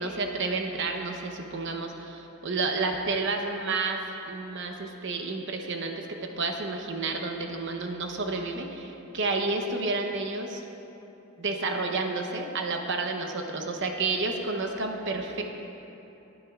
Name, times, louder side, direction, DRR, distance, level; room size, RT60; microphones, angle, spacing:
voice 1, 0.0-10.6 11.4-15.5, right 3 dB, 55° right, 3 dB, 0.9 m, -30 dB
17.5 x 9.8 x 2.5 m, 3.0 s
head